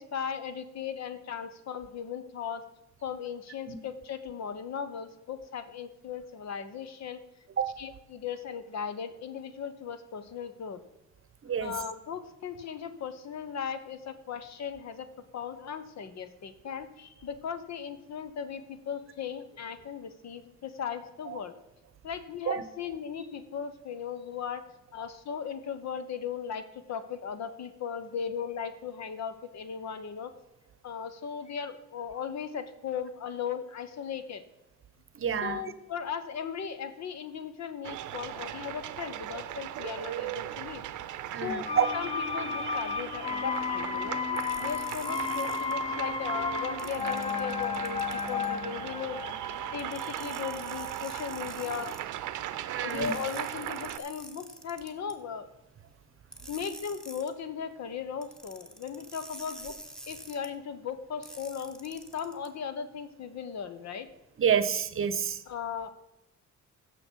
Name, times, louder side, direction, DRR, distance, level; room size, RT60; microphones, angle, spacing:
voice 1, 0.0-2.6 3.0-7.2 7.8-10.8 11.6-15.1 15.3-21.5 22.0-24.6 24.9-30.3 30.8-34.4 35.3-40.8 41.3-44.2 44.6-49.2 49.6-51.9 52.8-55.5 56.5-59.7 60.1-64.1 65.5-65.9, left 7 dB, 65° left, 1.0 m, -37 dB
voice 2, 11.4-11.7 21.3-21.4 22.5-22.6 35.2-35.6 41.3-41.9 52.6-53.1 64.4-65.4, right 7 dB, 45° right, 0.8 m, -28 dB
sound 1, 37.8-54.0, right 12 dB, 80° right, 0.7 m, -38 dB
sound 2, 41.6-51.4 51.7-51.8, left 5 dB, 20° left, 0.5 m, -34 dB
sound 3, 44.4-45.7 46.8-48.5 49.8-52.0 52.9-55.1 56.3-57.3 58.2-60.5 61.2-62.5, right 1 dB, ahead, 1.3 m, -47 dB
16.0 x 6.3 x 4.5 m
cardioid pair, 90°, 30 cm